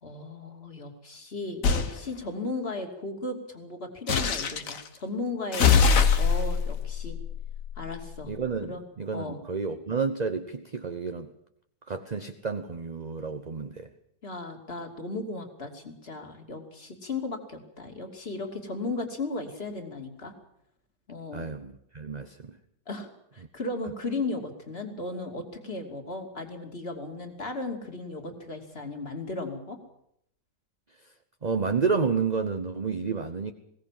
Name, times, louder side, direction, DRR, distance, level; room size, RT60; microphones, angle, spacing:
voice 1, 0.0-7.2 7.8-8.3 8.6-8.8 9.1-9.4 14.2-20.3 21.1-21.5 22.9-29.8, left 2 dB, 35° left, 4 dB, 3.1 m, -36 dB
sound 1, 1.6-1.9 4.1-4.8 5.5-8.2, left 6 dB, 50° left, 1.5 m, -23 dB
voice 2, 8.2-11.3 11.9-13.9 21.3-22.6 31.4-33.5, right 5 dB, 35° right, 7 dB, 0.8 m, -30 dB
21.0 x 17.5 x 7.5 m, 0.73 s
omnidirectional pair, 1.9 m